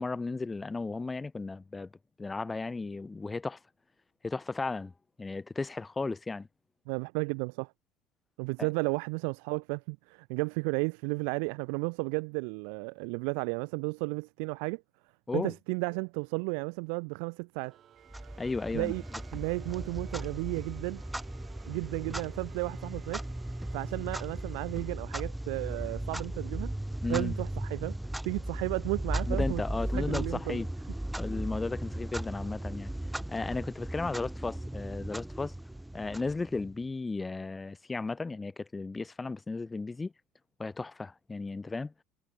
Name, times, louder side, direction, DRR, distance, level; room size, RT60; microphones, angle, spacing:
voice 1, 0.0-1.9 2.2-3.6 4.2-4.9 5.2-6.5 8.6-8.7 15.3-15.5 18.4-18.9 27.0-27.4 29.3-30.7 31.2-32.9 33.3-35.5 35.9-40.1 40.6-41.9, left 3 dB, 15° left, 1.7 m, -35 dB
voice 2, 6.9-7.7 8.4-14.8 15.3-17.8 18.7-19.0 19.3-21.0 21.7-23.2 23.7-26.7 27.1-28.0 28.2-29.6 29.9-30.6, right 40 dB or more, 75° right, 2.1 m, -33 dB
sound 1, 17.6-24.9, right 10 dB, 45° right, 4.9 m, -56 dB
Clock, 18.1-36.8, right 1 dB, 5° right, 1.2 m, -37 dB
supercardioid pair, 105°, 0 cm